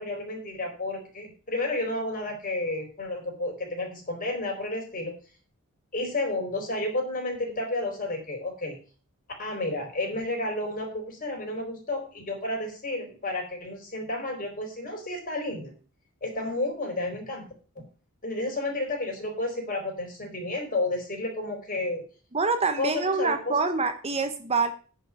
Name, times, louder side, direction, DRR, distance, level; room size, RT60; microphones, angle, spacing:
voice 1, 0.0-5.2 5.9-8.8 9.4-15.7 16.2-17.5 18.2-22.0 22.8-23.6, left 2 dB, 40° left, 1 dB, 4.3 m, -31 dB
voice 2, 22.3-24.7, right 4 dB, 30° right, 8 dB, 1.0 m, -26 dB
9.9 x 5.7 x 8.0 m, 0.38 s
head